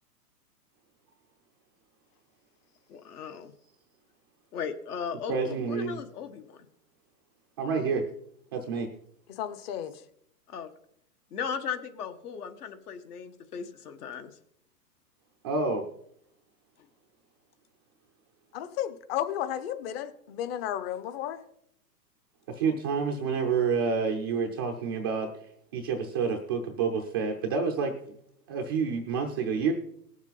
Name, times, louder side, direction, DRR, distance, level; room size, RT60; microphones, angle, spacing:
voice 1, 2.9-3.5 4.5-6.6 10.5-10.7 11.3-14.3, left 7 dB, 65° left, 8 dB, 1.4 m, -37 dB
voice 2, 5.3-6.0 7.6-8.0 8.5-8.9 15.4-15.8 22.5-25.3 25.7-27.9 28.5-29.7, right 5 dB, 15° right, 1 dB, 0.4 m, -28 dB
voice 3, 9.3-10.0 18.5-21.4, left 11 dB, 40° left, 11 dB, 0.9 m, -33 dB
18.5 x 7.2 x 3.9 m, 0.71 s
hypercardioid pair, 130°, 48 cm